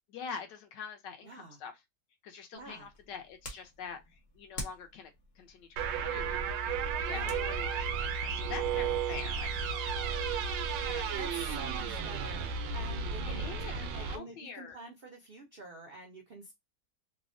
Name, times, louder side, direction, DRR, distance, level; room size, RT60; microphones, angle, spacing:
voice 1, 0.1-1.8 2.2-4.0 4.3-6.4 7.0-9.8 10.9-11.7 13.2-14.8, left 6 dB, 75° left, 1.3 m, -45 dB
voice 2, 1.2-1.6 2.5-2.9 7.1-7.4 10.7-16.5, right 2 dB, 70° right, 0.5 m, -47 dB
sound 1, 2.5-9.3, left 2 dB, 45° left, 0.8 m, -49 dB
sound 2, 5.8-14.2, right 6 dB, 90° right, 1.3 m, -33 dB
3.4 x 2.0 x 2.5 m
omnidirectional pair, 1.9 m